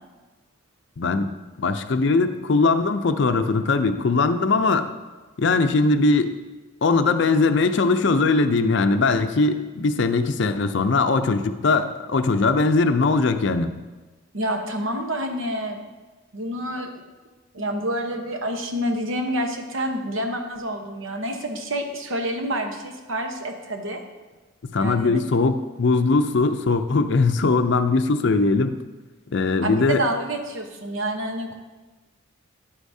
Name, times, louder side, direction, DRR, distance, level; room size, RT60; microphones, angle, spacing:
voice 1, 1.0-4.9 5.4-6.3 6.8-13.7 24.6-28.8 29.3-30.0, left 3 dB, 60° left, 9 dB, 0.5 m, -20 dB
voice 2, 14.3-15.8 16.3-16.9 17.5-24.0 24.8-25.1 29.6-31.5, right 1 dB, 75° right, 4 dB, 1.0 m, -28 dB
10.0 x 8.1 x 2.7 m, 1.2 s
head